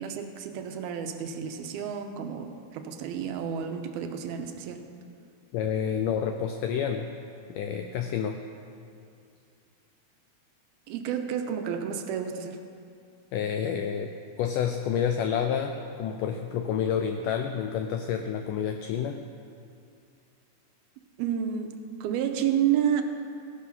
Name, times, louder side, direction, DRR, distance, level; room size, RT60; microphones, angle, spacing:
voice 1, 0.0-4.8 10.9-12.6 21.2-23.0, right 9 dB, 85° right, 6 dB, 2.7 m, -30 dB
voice 2, 5.5-7.1 7.5-8.4 13.3-14.1 14.4-19.2, left 8 dB, 85° left, 6 dB, 1.8 m, -29 dB
16.5 x 11.5 x 5.5 m, 2.5 s
omnidirectional pair, 4.4 m